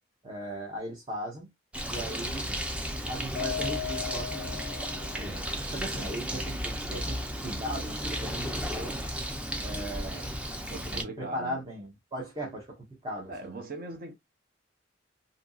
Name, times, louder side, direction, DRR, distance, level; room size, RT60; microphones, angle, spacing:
voice 1, 0.2-1.5 1.9-2.5 3.1-4.6 5.2-5.4 5.7-9.0 9.6-10.3 10.9-13.6, right 1 dB, 25° right, 0.8 m, -38 dB
Bird, 1.7-11.0, equal, 5° right, 0.4 m, -34 dB
Mallet percussion, 3.4-5.6, left 10 dB, 65° left, 0.3 m, -37 dB
voice 2, 10.7-11.6 13.3-14.1, right 2 dB, 50° right, 0.6 m, -40 dB
2.7 x 2.6 x 2.3 m
head